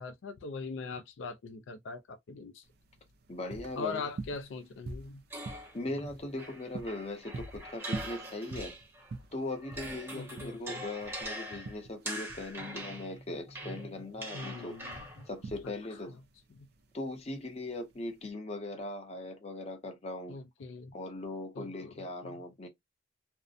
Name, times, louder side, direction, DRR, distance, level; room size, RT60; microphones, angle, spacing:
voice 1, 0.0-2.6 3.8-5.2 10.1-10.8 14.3-15.3 15.6-15.7 16.6-16.7 20.3-20.9 21.6-21.7 22.2-22.4, left 4 dB, 80° left, 0.4 m, -41 dB
sound 1, 2.6-18.3, right 3 dB, 55° right, 0.4 m, -46 dB
voice 2, 3.3-4.0 5.5-8.7 9.3-14.7 15.3-16.2 16.9-20.4 20.9-22.7, left 2 dB, 35° left, 0.7 m, -39 dB
sound 2, 5.3-9.1 9.5-15.3, right 1 dB, 15° right, 0.9 m, -43 dB
2.6 x 2.1 x 2.4 m
head